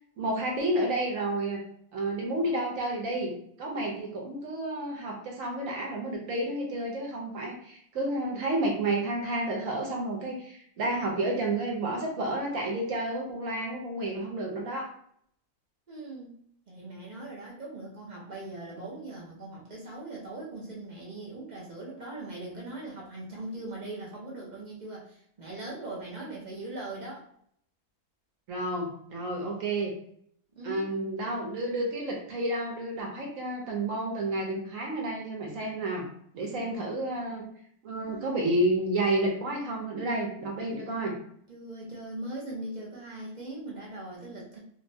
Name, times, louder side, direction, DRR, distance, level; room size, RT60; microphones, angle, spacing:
voice 1, 0.2-1.6 1.9-3.3 3.6-14.9 28.5-29.9 30.6-36.0 36.3-37.4 37.8-41.1, right 1 dB, 65° right, -1 dB, 1.0 m, -30 dB
voice 2, 15.9-16.3 16.7-27.2 30.6-30.9 36.4-36.8 38.0-38.6 41.5-44.6, right 2 dB, 50° right, -4 dB, 0.5 m, -40 dB
3.6 x 2.1 x 2.6 m, 0.66 s
omnidirectional pair, 1.6 m